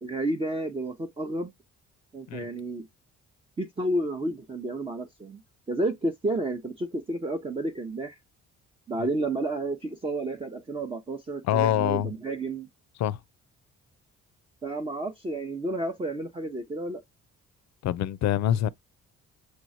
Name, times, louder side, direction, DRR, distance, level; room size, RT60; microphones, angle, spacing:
voice 1, 0.0-1.5 2.1-2.9 3.6-5.4 5.7-8.2 8.9-12.7 14.6-17.0, right 1 dB, 20° right, 0.7 m, -31 dB
voice 2, 11.4-12.1 13.0-13.2 17.8-18.7, left 11 dB, 65° left, 0.5 m, -25 dB
6.4 x 3.0 x 2.5 m
cardioid pair, 90°, 30 cm